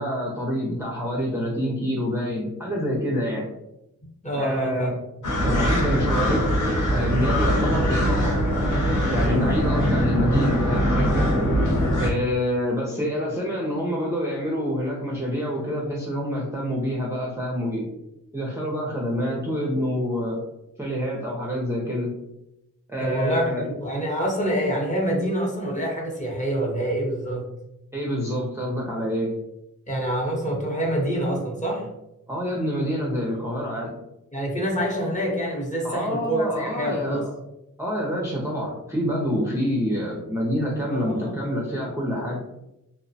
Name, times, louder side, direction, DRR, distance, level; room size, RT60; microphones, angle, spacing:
voice 1, 0.0-3.4 4.3-5.0 5.3-6.6 6.9-8.3 9.1-11.3 12.0-17.9 18.3-20.4 20.8-22.1 22.9-23.6 27.9-29.3 32.3-33.9 35.8-37.3 37.8-42.4, equal, 10° right, -4 dB, 0.4 m, -27 dB
voice 2, 4.2-5.0 23.0-27.5 29.9-31.9 34.3-37.3 40.9-41.4, right 1 dB, 20° left, -2 dB, 0.7 m, -26 dB
sound 1, 5.2-12.1, equal, 65° left, 0.9 m, -22 dB
2.8 x 2.0 x 2.6 m, 0.87 s
wide cardioid pair, 125°, 33 cm